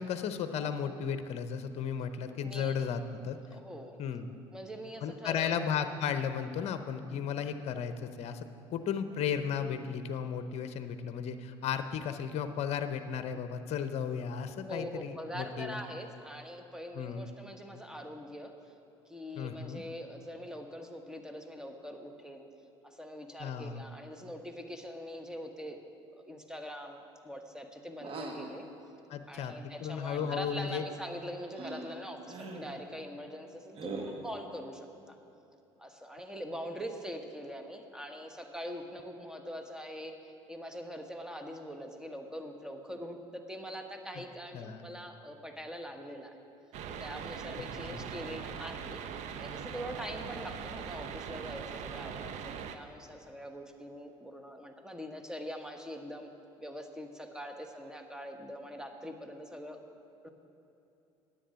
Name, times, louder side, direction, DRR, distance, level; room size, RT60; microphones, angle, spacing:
voice 1, 0.0-3.4 4.0-4.3 5.0-15.8 16.9-17.3 19.4-19.8 23.4-23.8 29.1-29.5 29.8-30.8 44.1-44.2 44.5-44.8 47.6-48.1, left 7 dB, 55° left, 10 dB, 0.8 m, -35 dB
voice 2, 2.4-2.7 3.5-4.0 4.5-5.6 14.6-18.7 19.1-22.5 22.8-25.8 26.1-28.7 29.3-35.2 35.8-46.4 47.0-49.0 49.4-56.3 56.6-59.8 60.2-60.3, equal, 5° right, 5 dB, 1.3 m, -43 dB
sound 1, 28.0-28.5 30.1-30.6 31.5-31.9 32.3-32.7 33.8-34.3, right 3 dB, 45° right, 1.7 m, -41 dB
sound 2, 46.7-52.8, right 7 dB, 60° right, 0.8 m, -41 dB
10.0 x 8.2 x 7.6 m, 2.8 s
hypercardioid pair, 65°, 13 cm